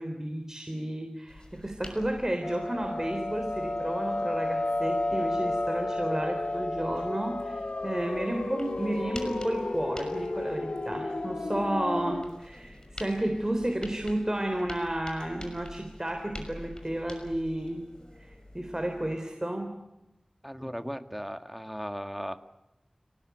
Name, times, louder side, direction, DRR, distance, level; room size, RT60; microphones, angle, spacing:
voice 1, 0.0-17.8 18.2-19.7, right 1 dB, 25° right, 5 dB, 3.7 m, -32 dB
sound 1, 1.3-19.2, left 1 dB, 40° left, 6.1 m, -48 dB
sound 2, 2.4-12.2, left 2 dB, 80° left, 1.5 m, -32 dB
voice 2, 20.4-22.4, equal, ahead, 7 dB, 1.9 m, -37 dB
29.5 x 19.0 x 9.5 m, 0.94 s
wide cardioid pair, 50°, 2 cm